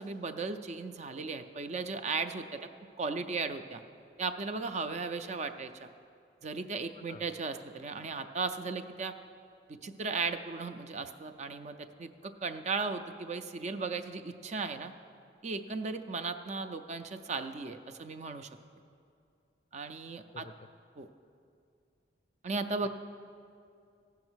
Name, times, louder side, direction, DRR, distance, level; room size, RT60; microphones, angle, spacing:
voice 1, 0.0-2.6 3.0-3.8 4.2-5.9 6.4-9.1 9.7-14.9 15.4-18.5 19.7-20.5 21.0-21.1 22.4-22.9, right 4 dB, 40° right, 9 dB, 0.4 m, -36 dB
voice 2, 20.3-20.7, left 3 dB, 35° left, 10 dB, 0.3 m, -48 dB
15.0 x 5.7 x 6.2 m, 2.4 s
head